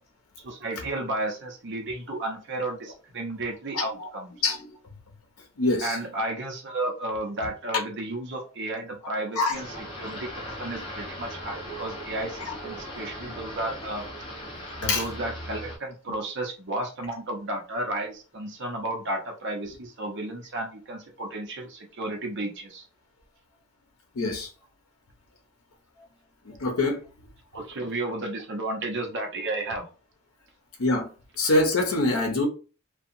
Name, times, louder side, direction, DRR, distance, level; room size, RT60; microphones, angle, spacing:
voice 1, 0.4-4.3 5.8-14.1 14.8-22.9 27.5-29.8, right 2 dB, 55° right, 0.7 m, -33 dB
voice 2, 3.7-4.1 4.4-4.7 5.6-6.0 9.4-9.5 14.8-15.0 24.2-24.5 26.5-27.0 30.8-31.1 31.4-32.5, left 2 dB, 85° left, 0.6 m, -24 dB
sound 1, 9.5-15.8, equal, 25° left, 0.8 m, -38 dB
2.7 x 2.2 x 2.5 m
head